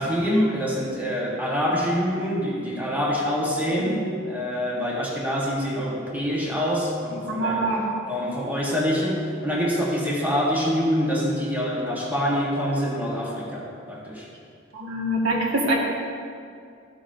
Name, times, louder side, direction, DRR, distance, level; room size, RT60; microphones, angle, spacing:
voice 1, 0.0-7.7 8.1-14.3, equal, 10° right, -5 dB, 1.4 m, -25 dB
voice 2, 7.3-7.8 14.7-15.8, right 1 dB, 75° right, -3 dB, 1.8 m, -24 dB
14.0 x 8.1 x 2.7 m, 2.3 s
head